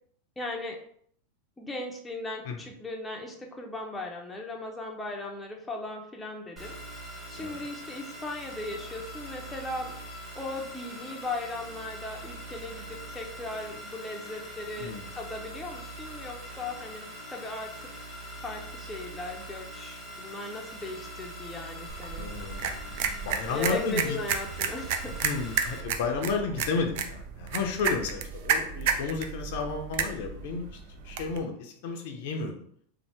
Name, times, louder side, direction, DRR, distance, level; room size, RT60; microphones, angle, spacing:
voice 1, 0.4-0.8 1.6-6.8 7.3-10.0 10.3-17.9 18.4-22.3 23.5-25.2, left 2 dB, 10° left, 0 dB, 0.6 m, -38 dB
sound 1, 6.6-25.8, right 1 dB, 10° right, 1.1 m, -42 dB
voice 2, 7.4-7.7 14.8-15.1 22.2-24.2 25.2-32.6, left 4 dB, 65° left, 3 dB, 0.5 m, -32 dB
sound 2, 21.9-31.4, right 6 dB, 65° right, 0.4 m, -32 dB
2.7 x 2.1 x 3.3 m, 0.63 s
hypercardioid pair, 110°, 0 cm